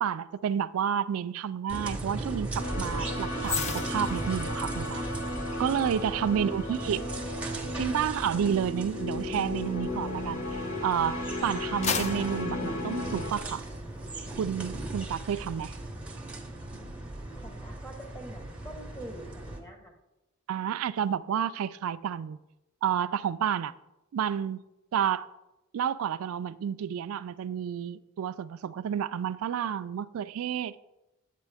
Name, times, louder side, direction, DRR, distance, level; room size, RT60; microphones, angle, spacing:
voice 1, 0.0-5.0 5.6-7.0 7.8-10.4 10.8-13.6 14.4-15.7 20.5-22.4 22.8-23.7 24.1-24.6 24.9-25.3 25.7-30.8, right 8 dB, 85° right, 0.3 m, -30 dB
sound 1, 1.7-19.6, right 2 dB, 5° right, 0.9 m, -38 dB
sound 2, 2.6-13.3, left 1 dB, 80° left, 1.4 m, -35 dB
sound 3, 3.4-10.8 11.3-13.7 14.0-14.2, left 6 dB, 30° left, 0.4 m, -39 dB
voice 2, 6.1-7.4 17.4-20.0, equal, 15° left, 1.2 m, -46 dB
9.5 x 8.3 x 3.4 m
head